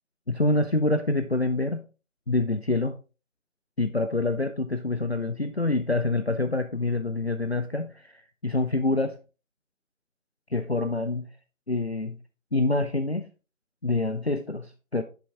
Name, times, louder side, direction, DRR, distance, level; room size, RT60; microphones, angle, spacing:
voice 1, 0.3-1.8 2.3-3.0 3.8-9.2 10.5-11.3 11.7-12.2 12.5-13.3 13.8-15.0, left 2 dB, 55° left, 0.5 m, -26 dB
7.9 x 6.8 x 2.6 m
figure-of-eight pair, 170°, 40 cm